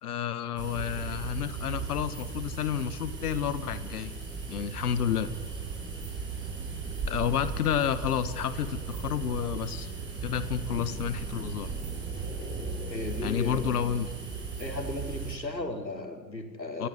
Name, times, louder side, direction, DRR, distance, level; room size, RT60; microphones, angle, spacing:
voice 1, 0.0-4.1 4.5-5.3 7.1-9.9 10.2-11.7 13.2-14.1 14.8-14.9 16.8-16.9, left 9 dB, 65° left, 13 dB, 1.7 m, -30 dB
sound 1, 0.6-15.3, right 5 dB, 20° right, 7.8 m, -36 dB
voice 2, 12.9-14.0 14.6-16.9, left 2 dB, 85° left, 3 dB, 4.2 m, -36 dB
30.0 x 16.0 x 9.9 m, 1.3 s
figure-of-eight pair, 85°, 50 cm